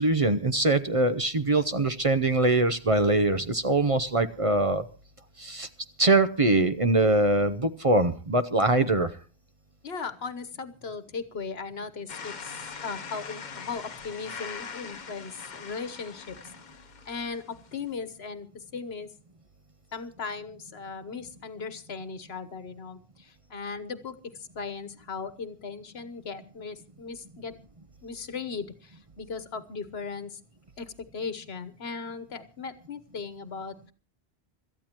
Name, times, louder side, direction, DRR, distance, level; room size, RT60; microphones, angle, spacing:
voice 1, 0.0-4.8 5.4-5.7 6.0-9.1, right 2 dB, 35° right, 10 dB, 0.8 m, -23 dB
voice 2, 9.8-16.4 17.1-19.1 19.9-27.5 28.0-30.4 30.8-33.9, left 5 dB, 70° left, 12 dB, 1.3 m, -38 dB
sound 1, 12.1-17.9, left 5 dB, 45° left, 1.0 m, -42 dB
26.5 x 13.5 x 3.0 m, 0.36 s
omnidirectional pair, 1.1 m